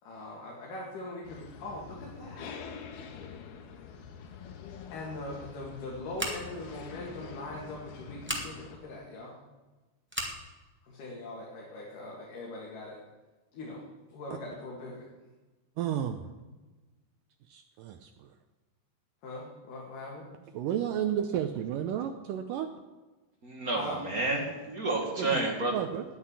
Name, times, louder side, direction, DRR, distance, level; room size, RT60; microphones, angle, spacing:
voice 1, 0.0-2.6 4.9-9.4 10.8-13.0 13.5-13.9 14.1-15.1 19.2-20.3 23.7-24.0, left 2 dB, 60° left, -3 dB, 3.5 m, -41 dB
sound 1, 1.2-8.8, left 6 dB, 80° left, 3.2 m, -46 dB
Scissors, 6.1-6.7 8.2-8.5 10.1-10.4, equal, 15° right, 0.4 m, -34 dB
voice 2, 15.8-16.2 17.5-18.3 20.5-22.7 25.2-25.3 25.7-26.0, right 10 dB, 85° right, 7 dB, 1.9 m, -32 dB
voice 3, 23.4-25.7, right 2 dB, 40° right, 0 dB, 1.3 m, -30 dB
10.0 x 9.4 x 9.8 m, 1.2 s
omnidirectional pair, 4.5 m